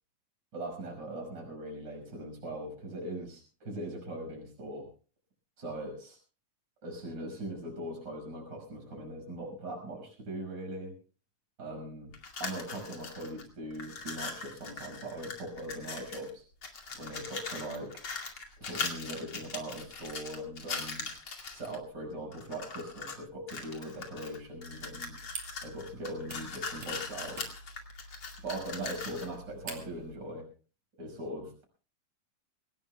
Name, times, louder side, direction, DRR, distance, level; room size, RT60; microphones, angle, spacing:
voice 1, 0.5-4.9 5.6-6.2 6.8-10.9 11.6-12.1 12.4-16.4 17.0-17.9 18.6-21.1 21.5-25.2 25.6-27.4 28.4-30.4 31.0-31.6, right 1 dB, 30° right, 2 dB, 6.2 m, -40 dB
sound 1, 12.1-13.4 13.7-16.3 16.6-21.8 22.3-23.2 23.5-29.3, left 4 dB, 40° left, 2.8 m, -40 dB
sound 2, 24.7-30.1, right 3 dB, 50° right, 3.8 m, -47 dB
24.5 x 18.0 x 2.3 m, 0.37 s
omnidirectional pair, 4.1 m